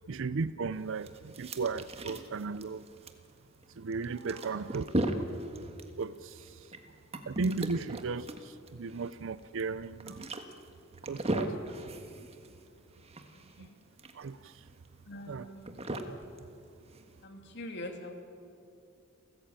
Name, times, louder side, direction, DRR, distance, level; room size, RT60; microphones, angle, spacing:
voice 1, 0.1-2.9 3.8-4.9 6.0-6.5 7.3-10.3 11.1-11.5 13.6-13.7 14.1-14.6 15.3-15.4, right 4 dB, 65° right, 14 dB, 0.5 m, -35 dB
sound 1, 0.7-17.2, right 1 dB, 30° right, 1.5 m, -39 dB
voice 2, 4.4-4.8 13.3-13.8 15.0-15.8 17.2-18.1, left 1 dB, 55° left, 4 dB, 2.9 m, -45 dB
29.5 x 14.0 x 8.9 m, 2.5 s
head